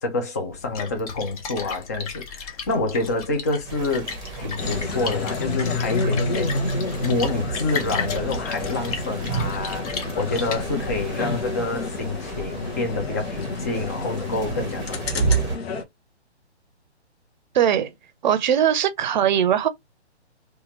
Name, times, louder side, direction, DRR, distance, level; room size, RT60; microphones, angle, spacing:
voice 1, 0.0-4.1 4.4-6.5 7.0-15.4, left 2 dB, 15° left, 0.4 m, -27 dB
Splash splatter, 0.5-11.1, left 5 dB, 35° left, 0.8 m, -35 dB
sound 1, 3.6-15.6, right 5 dB, 10° right, 0.8 m, -32 dB
sound 2, 4.6-15.8, left 3 dB, 60° left, 0.9 m, -30 dB
voice 2, 17.5-17.9 18.2-19.7, right 9 dB, 45° right, 0.6 m, -20 dB
2.8 x 2.5 x 2.8 m
figure-of-eight pair, 135°, 34 cm